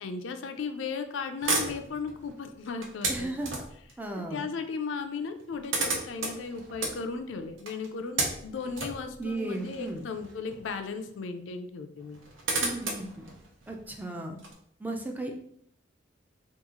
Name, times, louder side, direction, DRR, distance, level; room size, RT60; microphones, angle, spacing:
voice 1, 0.0-3.3 4.3-12.2, left 5 dB, 75° left, 7 dB, 0.4 m, -36 dB
sound 1, 1.4-3.9 5.0-5.1 5.3-10.8 11.1-11.2 12.0-14.5, right 3 dB, 85° right, 0.7 m, -34 dB
voice 2, 3.1-3.5 4.0-4.5 9.2-10.0 12.6-13.3 13.7-14.4 14.8-15.4, right 2 dB, 10° right, 2 dB, 0.3 m, -35 dB
2.9 x 2.4 x 3.6 m, 0.66 s
head